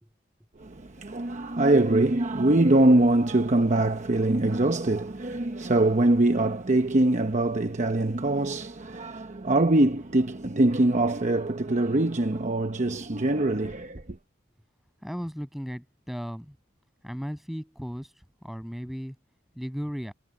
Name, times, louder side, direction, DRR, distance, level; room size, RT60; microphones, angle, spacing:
voice 1, 0.6-14.0, right 2 dB, 40° right, 0.9 m, -23 dB
voice 2, 15.0-16.5 17.0-18.1 18.4-19.2 19.5-20.1, equal, ahead, 6.8 m, -35 dB
head